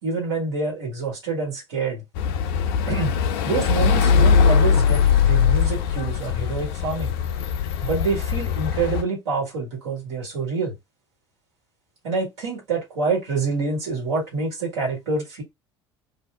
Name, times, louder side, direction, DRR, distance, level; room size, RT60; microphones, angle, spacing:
voice 1, 0.0-2.0 2.9-3.1 3.4-7.1 7.8-10.7 12.0-15.4, right 4 dB, 70° right, 1.6 m, -26 dB
sound 1, 2.2-9.0, left 6 dB, 60° left, 0.4 m, -20 dB
2.6 x 2.2 x 3.2 m
figure-of-eight pair, 65°, 14 cm